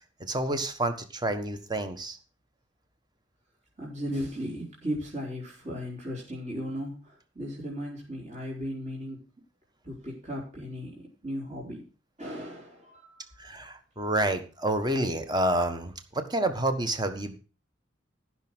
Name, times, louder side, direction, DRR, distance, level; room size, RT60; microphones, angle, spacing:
voice 1, 0.2-2.2 13.4-17.4, right 1 dB, 20° right, 8 dB, 1.5 m, -29 dB
voice 2, 3.8-9.3 9.8-11.9 12.2-13.4, equal, 40° right, -5 dB, 4.4 m, -36 dB
14.5 x 6.3 x 6.2 m, 0.36 s
head